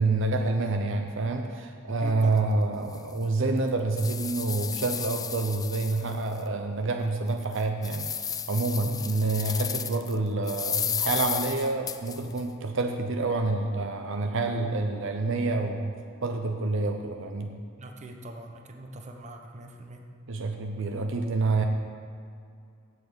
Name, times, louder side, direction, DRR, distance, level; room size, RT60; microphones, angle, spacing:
voice 1, 0.0-15.9 16.2-17.6 20.3-21.7, right 3 dB, 65° right, 4 dB, 0.8 m, -28 dB
voice 2, 2.0-2.5 8.8-9.0 17.8-20.1, right 1 dB, 35° right, 3 dB, 1.0 m, -42 dB
sound 1, 2.3-2.4 2.9-3.0 3.6-6.4 6.8-6.9 7.4-10.1 10.5-12.4, left 7 dB, 20° left, 0.4 m, -33 dB
8.4 x 7.2 x 8.4 m, 2.3 s
head